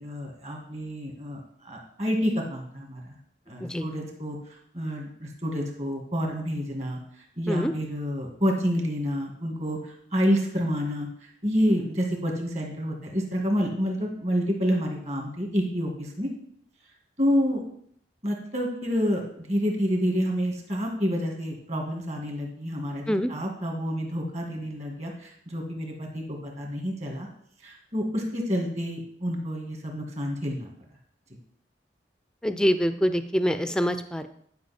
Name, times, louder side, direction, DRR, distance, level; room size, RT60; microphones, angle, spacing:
voice 1, 0.0-3.0 3.5-4.4 4.7-16.3 17.2-17.6 18.2-27.3 27.6-30.7, equal, 35° right, 1 dB, 1.9 m, -28 dB
voice 2, 32.4-34.3, equal, 5° left, 10 dB, 0.4 m, -25 dB
10.5 x 5.3 x 4.3 m, 0.66 s
head